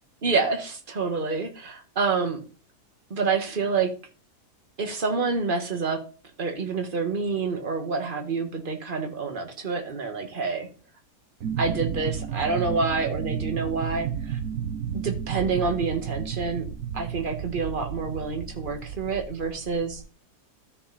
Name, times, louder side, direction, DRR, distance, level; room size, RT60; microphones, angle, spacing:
voice 1, 0.2-2.4 3.1-3.9 4.8-6.0 6.4-10.7 11.6-14.4 14.9-16.7 16.9-20.0, right 4 dB, 35° right, 5 dB, 1.5 m, -27 dB
sound 1, 11.4-20.0, right 8 dB, 65° right, 1.2 m, -32 dB
13.0 x 5.0 x 4.0 m, 0.38 s
omnidirectional pair, 1.7 m